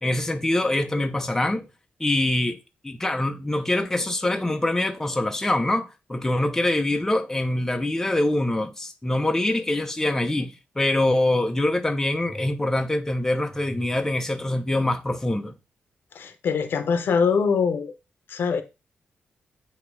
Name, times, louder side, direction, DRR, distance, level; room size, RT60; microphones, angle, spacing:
voice 1, 0.0-1.6 2.0-2.6 2.8-15.5, left 1 dB, 10° left, 0.7 m, -24 dB
voice 2, 16.1-17.9 18.3-18.6, left 6 dB, 70° left, 0.9 m, -23 dB
8.3 x 3.0 x 4.7 m
cardioid pair, 120°, 4 cm